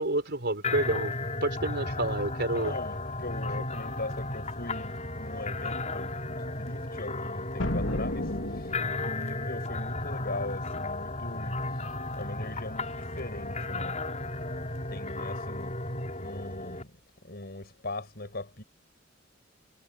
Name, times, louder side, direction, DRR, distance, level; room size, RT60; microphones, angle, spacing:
voice 1, 0.0-2.8, right 2 dB, 60° right, 4.6 m, -29 dB
sound 1, 0.6-16.8, left 2 dB, 35° left, 7.3 m, -34 dB
voice 2, 2.5-8.8 9.0-11.9 12.1-14.0 14.9-17.0 17.2-18.6, left 2 dB, 55° left, 7.2 m, -40 dB
sound 2, 7.6-9.3, left 1 dB, 75° left, 3.5 m, -32 dB
head